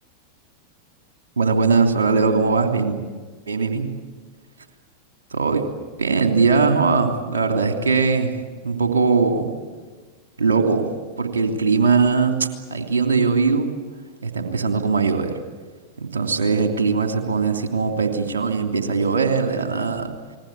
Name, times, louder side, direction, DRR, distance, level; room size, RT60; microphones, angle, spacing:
voice 1, 1.4-3.0 3.5-3.9 5.3-5.6 6.0-8.3 8.6-9.5 10.4-10.9 11.2-13.7 14.2-15.3 16.0-20.1, right 4 dB, 65° right, 5 dB, 3.0 m, -20 dB
28.5 x 20.5 x 8.6 m, 1.4 s
figure-of-eight pair, 90°, 0 cm